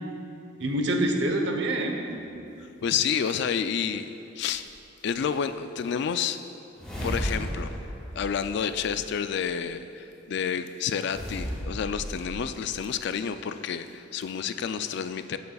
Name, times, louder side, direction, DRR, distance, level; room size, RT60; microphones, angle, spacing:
voice 1, 0.6-2.7, right 1 dB, 65° right, 3 dB, 0.8 m, -27 dB
voice 2, 2.8-4.1 4.4-4.6 5.0-6.4 7.0-7.7 8.1-15.4, left 7 dB, 60° left, 10 dB, 0.3 m, -29 dB
sound 1, 4.4-4.5 6.8-9.2 11.0-12.7, equal, 5° left, 1.8 m, -35 dB
15.0 x 6.7 x 2.3 m, 2.8 s
head